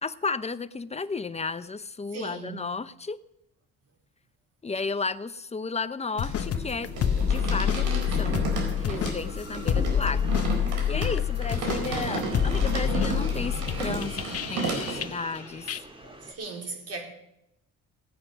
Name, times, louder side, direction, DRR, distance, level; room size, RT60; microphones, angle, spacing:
voice 1, 0.0-3.2 4.6-6.9 7.2-7.9 8.1-8.5 8.8-10.3 10.9-14.2 14.5-15.7, left 4 dB, 20° left, 0.7 m, -33 dB
voice 2, 2.1-2.7 16.2-17.0, right 4 dB, 55° right, 4.4 m, -37 dB
sound 1, 6.2-15.4 15.7-15.8, left 9 dB, 50° left, 1.0 m, -28 dB
sound 2, 6.2-15.1, right 3 dB, 80° right, 4.7 m, -33 dB
sound 3, 7.4-16.3, right 1 dB, 15° right, 2.4 m, -45 dB
17.5 x 9.1 x 6.0 m
cardioid pair, 90°, 30 cm